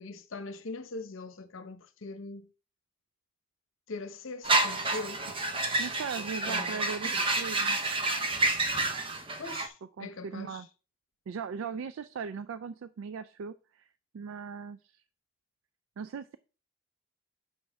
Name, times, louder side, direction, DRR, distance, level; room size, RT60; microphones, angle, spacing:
voice 1, 0.0-2.5 3.9-5.2 6.5-6.7 9.4-10.6, left 3 dB, 75° left, 0.8 m, -41 dB
sound 1, 4.4-9.7, right 2 dB, 25° right, 0.6 m, -29 dB
voice 2, 5.8-7.8 10.0-10.7 11.3-13.9 14.1-15.0 16.0-16.4, right 6 dB, 75° right, 0.3 m, -39 dB
6.3 x 6.2 x 3.4 m
head